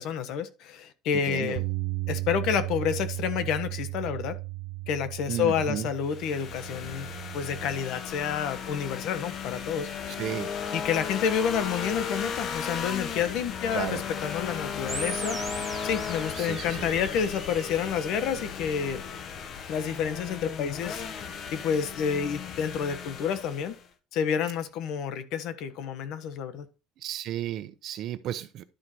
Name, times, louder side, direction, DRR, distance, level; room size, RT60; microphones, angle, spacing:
voice 1, 0.0-1.6 2.1-4.4 4.9-7.1 7.3-10.2 10.7-15.4 15.8-19.0 19.7-21.0 21.5-23.7 24.1-26.6, left 7 dB, 65° left, 1.2 m, -29 dB
Bass guitar, 1.6-7.8, right 22 dB, 85° right, 0.6 m, -35 dB
voice 2, 5.3-5.9 10.2-10.5 13.7-14.0 16.4-16.9 27.0-28.6, right 12 dB, 55° right, 0.9 m, -33 dB
sound 1, 6.0-23.9, left 6 dB, 45° left, 1.2 m, -36 dB
sound 2, 14.9-17.9, right 4 dB, 20° right, 1.3 m, -40 dB
11.5 x 4.6 x 4.2 m
cardioid pair, 130°, 0 cm